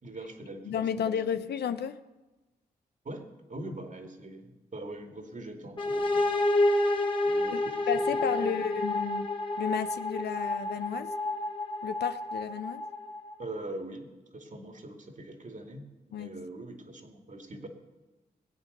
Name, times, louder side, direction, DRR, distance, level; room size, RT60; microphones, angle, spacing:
voice 1, 0.0-1.2 3.0-6.3 7.3-8.7 13.4-14.1 14.3-15.8 16.1-17.7, right 1 dB, 50° right, 4 dB, 2.4 m, -42 dB
voice 2, 0.7-2.0 7.5-7.6 7.9-9.3 9.6-11.1 11.8-12.8 16.1-16.3, left 8 dB, 85° left, 12 dB, 0.7 m, -32 dB
sound 1, 5.8-13.4, left 2 dB, 30° left, 1.8 m, -29 dB
20.5 x 8.4 x 6.7 m, 1.1 s
cardioid pair, 55°, 17 cm